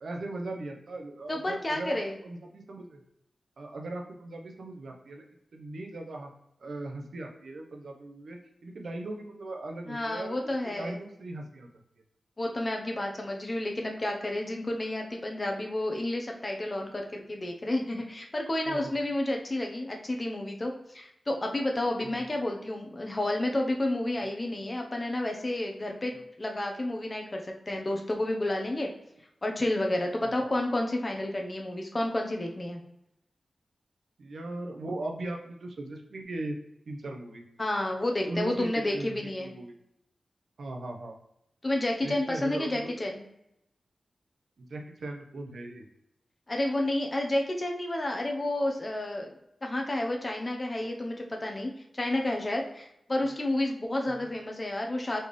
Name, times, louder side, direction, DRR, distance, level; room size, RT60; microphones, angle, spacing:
voice 1, 0.0-3.0 3.6-5.2 5.5-6.3 6.6-11.8 18.7-19.0 22.0-22.2 26.1-26.2 30.2-30.5 34.2-36.6 36.9-37.4 38.3-39.7 40.6-41.2 42.0-43.0 44.6-45.9 53.2-53.3 54.1-54.3, right 2 dB, 70° right, 2 dB, 0.7 m, -39 dB
voice 2, 1.3-2.1 9.9-11.0 12.4-28.9 29.4-32.8 37.6-39.5 41.6-43.2 46.5-49.3 49.6-55.2, left 1 dB, 25° left, 1 dB, 0.7 m, -30 dB
4.3 x 3.5 x 3.1 m, 0.81 s
wide cardioid pair, 135°, 0 cm